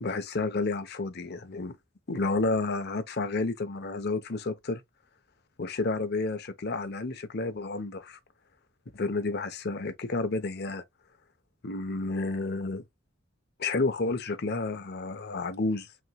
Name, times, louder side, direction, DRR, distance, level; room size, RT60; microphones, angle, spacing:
voice 1, 0.0-1.7 2.1-4.8 5.6-8.2 8.9-10.8 11.6-12.8 13.6-15.9, left 3 dB, 50° left, 0.8 m, -30 dB
5.9 x 3.0 x 2.2 m
head